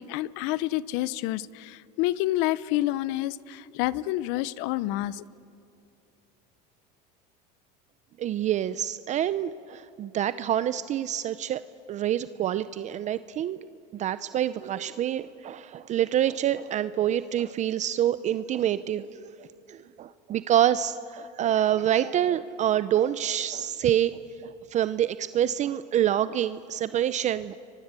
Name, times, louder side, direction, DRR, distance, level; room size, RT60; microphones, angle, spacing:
voice 1, 0.0-5.2, left 16 dB, 65° left, 19 dB, 0.8 m, -28 dB
voice 2, 8.2-11.6 11.9-13.6 13.9-27.5, right 11 dB, 35° right, 14 dB, 0.6 m, -27 dB
30.0 x 23.5 x 8.3 m, 2.6 s
supercardioid pair, 135°, 21 cm